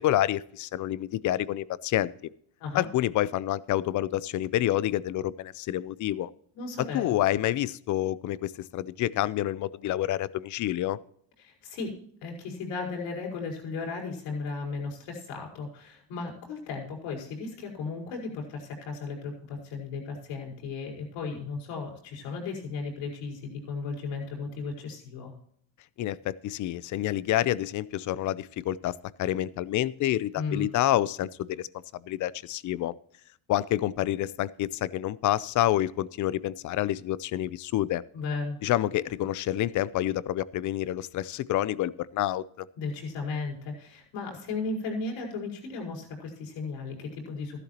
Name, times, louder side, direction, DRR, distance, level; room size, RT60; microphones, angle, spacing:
voice 1, 0.0-2.1 2.7-6.3 6.9-11.0 26.0-31.7 32.1-32.9 33.5-38.0 38.6-42.7, left 13 dB, 40° left, 19 dB, 0.5 m, -28 dB
voice 2, 6.5-7.1 11.4-25.3 30.3-30.7 38.1-38.6 42.8-47.6, left 4 dB, 75° left, 0 dB, 5.1 m, -35 dB
14.0 x 12.0 x 2.9 m, 0.62 s
cardioid pair, 125°, 46 cm